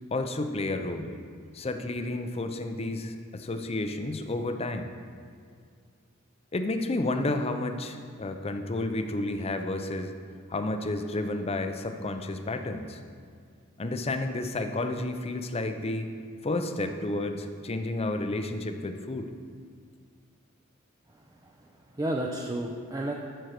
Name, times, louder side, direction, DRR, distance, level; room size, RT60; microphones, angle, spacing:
voice 1, 0.1-1.1 1.5-4.9 6.5-10.1 10.5-13.0 13.8-16.1 16.4-19.3, left 2 dB, 30° left, 7 dB, 0.6 m, -31 dB
voice 2, 21.1-23.1, right 1 dB, 20° right, 1 dB, 0.6 m, -33 dB
12.5 x 4.5 x 6.5 m, 2.1 s
head